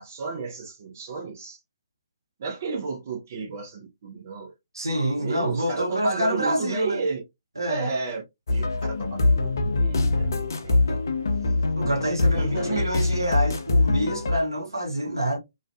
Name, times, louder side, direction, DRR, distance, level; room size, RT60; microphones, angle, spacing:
voice 1, 0.0-1.6 2.4-4.5 5.2-7.2 7.7-8.2 8.5-10.8 12.3-12.9, right 4 dB, 40° right, 0.7 m, -32 dB
voice 2, 4.7-7.0 7.6-7.9 10.9-11.0 11.8-15.4, right 1 dB, 75° right, 0.8 m, -27 dB
sound 1, 8.5-14.4, left 2 dB, 60° left, 0.4 m, -23 dB
2.4 x 2.3 x 2.3 m
figure-of-eight pair, 130°, 2 cm